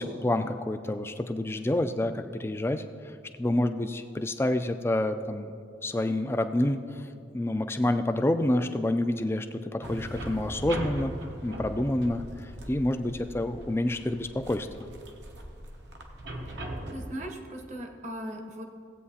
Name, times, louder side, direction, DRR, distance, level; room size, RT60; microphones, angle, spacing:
voice 1, 0.0-2.8 3.4-7.0 7.3-11.1 11.4-14.7, left 1 dB, 15° left, 8 dB, 0.3 m, -28 dB
sound 1, 9.8-17.2, right 1 dB, 70° right, 0.9 m, -40 dB
voice 2, 16.9-18.6, equal, 40° right, 3 dB, 0.9 m, -38 dB
16.0 x 8.4 x 2.8 m, 2.3 s
head